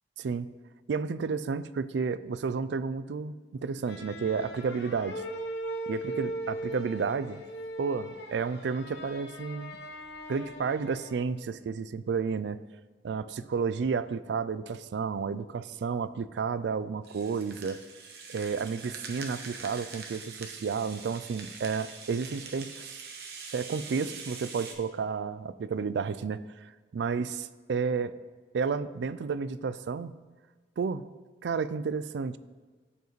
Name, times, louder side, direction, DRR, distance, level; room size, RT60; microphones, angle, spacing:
voice 1, 0.2-0.5 0.9-5.2 5.9-7.4 7.8-9.8 10.3-12.6 13.0-17.8 18.3-23.0 23.5-28.1 28.5-30.1 30.8-31.0 31.4-32.4, right 5 dB, 80° right, 15 dB, 0.4 m, -31 dB
sound 1, 3.8-11.3, right 1 dB, 80° left, 1.0 m, -39 dB
Rattle (instrument), 17.0-24.7, right 5 dB, 60° right, 1.0 m, -44 dB
14.0 x 4.7 x 3.1 m, 1.4 s
head